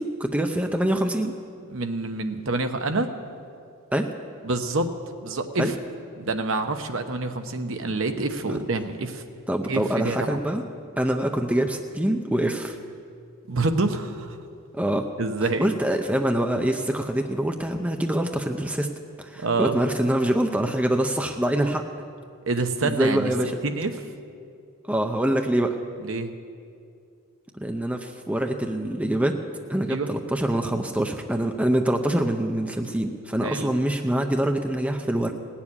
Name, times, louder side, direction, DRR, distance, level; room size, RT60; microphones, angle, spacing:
voice 1, 0.0-1.3 3.9-4.1 5.6-5.7 8.5-8.6 9.5-10.6 11.0-12.8 14.7-15.0 15.6-18.9 19.2-21.8 22.8-23.6 24.8-25.8 27.6-29.4 29.7-35.3, right 1 dB, 5° right, 4 dB, 0.6 m, -25 dB
voice 2, 1.7-3.1 4.4-4.9 5.2-5.7 6.2-9.2 9.7-10.4 13.5-14.4 15.2-15.7 19.3-19.8 22.4-24.0 26.0-26.3 29.8-30.1 33.4-33.7, right 3 dB, 65° right, 7 dB, 0.9 m, -27 dB
18.0 x 7.2 x 9.7 m, 2.4 s
head